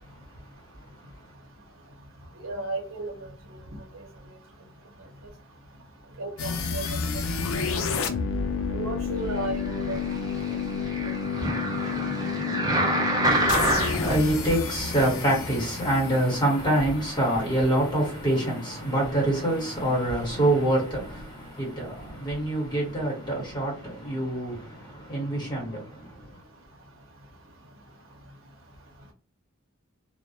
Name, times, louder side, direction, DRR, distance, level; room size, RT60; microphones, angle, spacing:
voice 1, 2.4-3.3 6.2-6.8 7.5-7.6 8.7-10.0 11.0-11.1, right 2 dB, 75° right, 0.8 m, -33 dB
sound 1, 6.4-17.3, left 5 dB, 80° left, 0.4 m, -30 dB
sound 2, 9.6-14.2 14.8-14.9, right 1 dB, 20° right, 0.5 m, -27 dB
voice 2, 13.4-26.4, right 1 dB, 20° left, 1.2 m, -26 dB
2.2 x 2.1 x 2.7 m
head